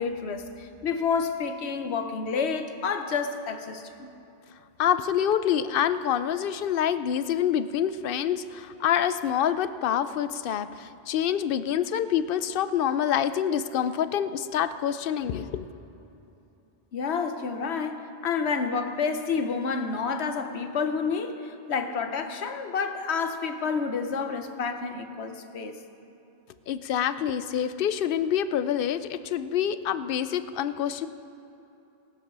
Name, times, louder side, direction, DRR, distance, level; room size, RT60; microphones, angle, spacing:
voice 1, 0.0-4.1 16.9-25.8, left 5 dB, 85° left, 7 dB, 1.1 m, -29 dB
voice 2, 4.8-15.7 26.7-31.1, left 9 dB, 65° left, 13 dB, 0.7 m, -26 dB
19.0 x 7.2 x 6.1 m, 2.9 s
omnidirectional pair, 1.1 m